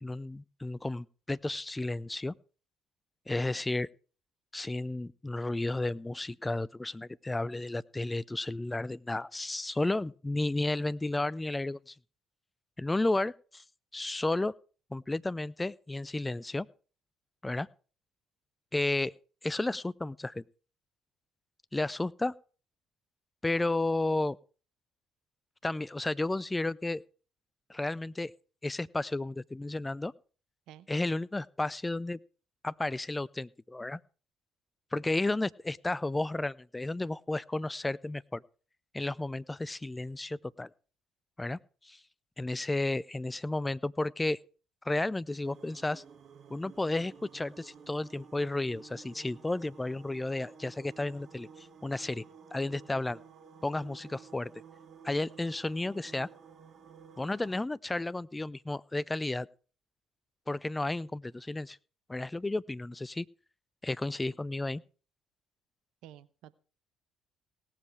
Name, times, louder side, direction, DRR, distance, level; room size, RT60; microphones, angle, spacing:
voice 1, 0.0-2.3 3.3-3.9 4.5-11.9 12.8-13.6 13.9-14.5 14.9-16.7 17.4-17.7 18.7-19.1 19.4-20.4 21.7-22.3 23.4-24.4 25.6-27.0 27.7-28.3 28.6-30.1 30.9-32.2 32.6-34.0 34.9-38.4 38.9-40.7 41.4-42.0 42.4-44.4 44.8-46.0 46.5-52.2 52.5-53.2 53.6-54.5 55.0-56.3 57.2-59.5 60.5-61.8 62.1-63.3 63.8-64.8, left 2 dB, 15° left, 22 dB, 0.5 m, -32 dB
sound 1, 45.4-57.6, right 6 dB, 50° right, 1.3 m, -53 dB
voice 2, 66.0-66.5, right 12 dB, 70° right, 16 dB, 0.7 m, -51 dB
17.5 x 7.5 x 4.7 m, 0.38 s
hypercardioid pair, 55°, 0 cm